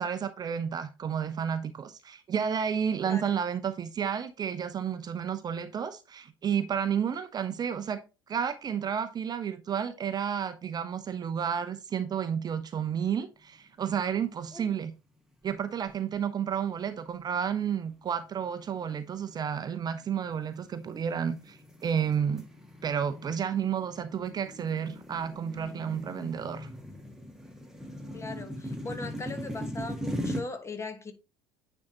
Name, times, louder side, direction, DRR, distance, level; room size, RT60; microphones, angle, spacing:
voice 1, 0.0-8.0 8.3-14.9 15.4-22.4 22.8-26.7, right 8 dB, 30° right, 0.7 m, -31 dB
sound 1, 13.9-14.5 14.8-14.9 15.6-16.1 16.7-16.9 17.5-30.4, equal, 5° right, 1.8 m, -40 dB
voice 2, 28.1-31.1, left 3 dB, 20° left, 1.3 m, -39 dB
9.5 x 4.3 x 3.0 m
figure-of-eight pair, 60°, 13 cm